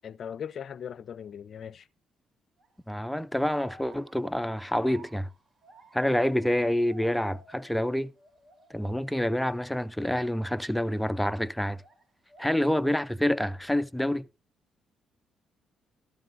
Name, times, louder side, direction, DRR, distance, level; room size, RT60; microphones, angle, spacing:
voice 1, 0.0-1.9, left 8 dB, 55° left, 0.5 m, -39 dB
sound 1, 2.6-2.9 3.5-7.9 8.2-8.9 9.4-9.6 10.4-12.0 12.3-13.1, right 2 dB, 30° right, 2.7 m, -55 dB
voice 2, 2.9-5.3 5.9-8.1 8.7-11.8 12.4-14.3, left 1 dB, 5° left, 0.5 m, -27 dB
13.5 x 12.5 x 2.5 m
cardioid pair, 90°, 0 cm